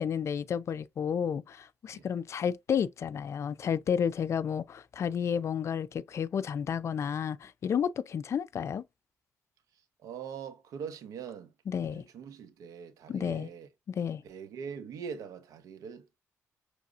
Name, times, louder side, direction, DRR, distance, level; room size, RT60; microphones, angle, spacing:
voice 1, 0.0-8.8 11.7-12.0 13.1-13.5 14.0-14.2, left 7 dB, 55° left, 0.5 m, -31 dB
voice 2, 9.7-11.5 11.8-13.7 14.2-16.2, right 7 dB, 85° right, 1.0 m, -43 dB
6.2 x 3.3 x 2.5 m
cardioid pair, 85°, 6 cm